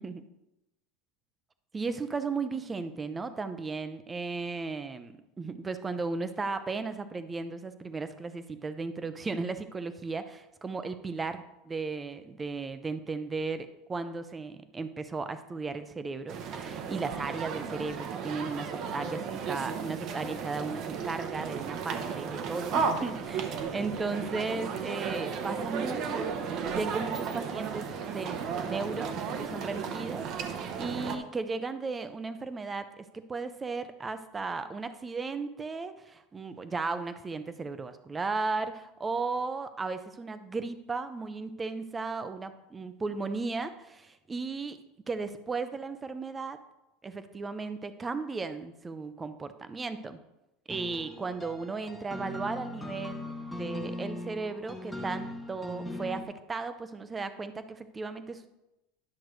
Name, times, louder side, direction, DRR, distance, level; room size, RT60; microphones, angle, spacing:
voice 1, 1.7-44.8 45.1-46.6 47.0-50.2 50.7-58.5, right 4 dB, 15° right, 11 dB, 0.6 m, -36 dB
sound 1, 16.3-31.2, right 6 dB, 45° right, 0.8 m, -34 dB
sound 2, 50.7-56.2, left 1 dB, 5° left, 0.9 m, -39 dB
10.5 x 6.4 x 3.2 m, 0.93 s
supercardioid pair, 130°, 0 cm